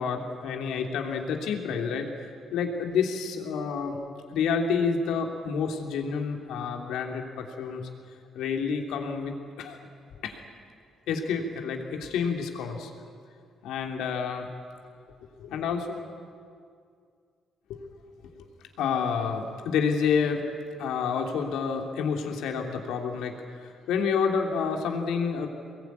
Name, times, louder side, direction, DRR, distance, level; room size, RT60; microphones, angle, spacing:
voice 1, 0.0-4.0 4.3-7.9 8.3-9.8 10.2-10.4 11.1-12.9 13.6-14.5 15.4-16.1 17.7-17.8 18.4-18.5 18.8-20.4 20.8-25.5, left 6 dB, 85° left, 3 dB, 3.1 m, -29 dB
23.5 x 20.5 x 9.6 m, 2.2 s
cardioid pair, 90°, 0 cm